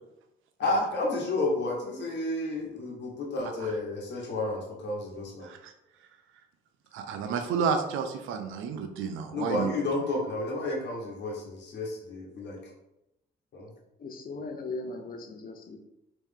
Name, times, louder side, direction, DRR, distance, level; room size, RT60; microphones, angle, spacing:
voice 1, 0.6-5.5 9.3-12.6 13.5-13.7, left 2 dB, 60° left, -3 dB, 1.2 m, -31 dB
voice 2, 6.9-9.7, right 6 dB, 90° right, 6 dB, 0.5 m, -31 dB
voice 3, 14.0-15.8, left 3 dB, 45° left, 4 dB, 0.7 m, -38 dB
3.2 x 3.1 x 3.6 m, 0.89 s
cardioid pair, 90°, 20 cm